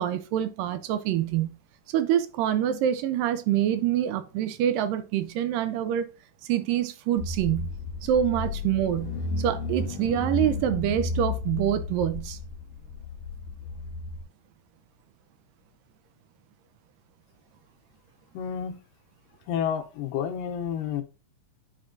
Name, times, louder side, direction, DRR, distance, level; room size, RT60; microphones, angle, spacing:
voice 1, 0.0-1.6 1.9-6.1 6.4-7.7 8.0-12.4, right 10 dB, 85° right, 2.2 m, -26 dB
Car / Engine, 7.2-14.2, left 3 dB, 65° left, 1.7 m, -33 dB
voice 2, 18.3-18.8 19.5-21.0, left 8 dB, 85° left, 2.4 m, -30 dB
9.8 x 4.3 x 2.5 m
omnidirectional pair, 3.9 m